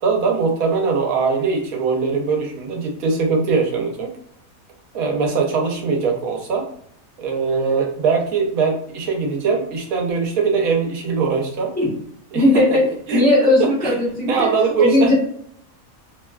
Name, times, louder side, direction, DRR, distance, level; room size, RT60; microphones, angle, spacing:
voice 1, 0.0-4.1 4.9-6.7 7.2-11.7 12.3-12.8 13.1-13.2 13.8-13.9 14.2-15.1, right 4 dB, 85° right, 1 dB, 1.1 m, -21 dB
voice 2, 12.3-12.8 13.1-14.5 14.8-15.1, left 1 dB, 10° left, -7 dB, 0.7 m, -17 dB
2.9 x 2.2 x 2.3 m, 0.65 s
omnidirectional pair, 1.5 m